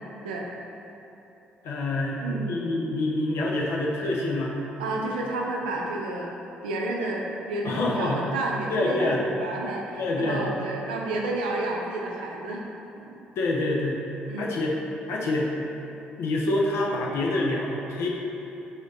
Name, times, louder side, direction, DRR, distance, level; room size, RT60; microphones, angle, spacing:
voice 1, 1.6-4.5 7.6-8.2 8.7-9.2 10.0-10.5 13.4-14.0 14.4-14.8 15.1-15.5 16.2-18.1, left 2 dB, 60° left, -2 dB, 0.7 m, -26 dB
voice 2, 2.2-2.5 4.8-6.3 6.6-12.7 13.0-13.2 14.3-14.6, right 2 dB, 80° right, -1 dB, 0.6 m, -30 dB
5.1 x 5.0 x 4.0 m, 2.9 s
figure-of-eight pair, 45°, 5 cm